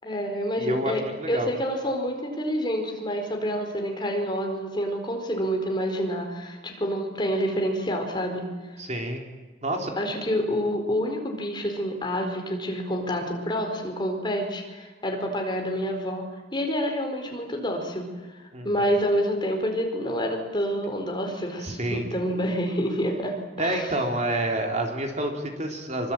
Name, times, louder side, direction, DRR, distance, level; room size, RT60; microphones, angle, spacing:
voice 1, 0.0-1.0 1.3-8.4 10.0-18.1 18.6-23.9, equal, 25° left, 3 dB, 4.6 m, -28 dB
voice 2, 0.6-1.5 8.8-9.2 9.6-9.9 18.5-18.7 21.6-22.1 23.6-26.1, right 1 dB, 35° right, 2 dB, 3.7 m, -28 dB
25.5 x 25.0 x 9.0 m, 1.3 s
head